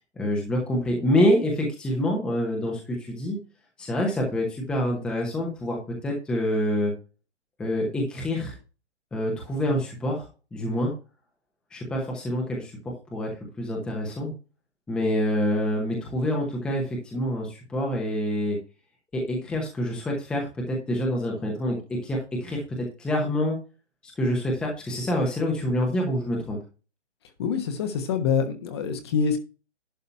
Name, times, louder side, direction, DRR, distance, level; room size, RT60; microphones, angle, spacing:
voice 1, 0.2-3.4 3.8-6.9 7.6-8.5 9.1-10.9 11.7-12.7 13.1-13.3 13.6-14.3 14.9-18.6 19.1-22.6 23.0-23.6 24.0-26.6, left 1 dB, ahead, -1 dB, 1.0 m, -26 dB
voice 2, 27.4-29.4, left 6 dB, 20° left, 7 dB, 1.1 m, -25 dB
11.5 x 4.0 x 5.7 m, 0.32 s
hypercardioid pair, 155°, 35 cm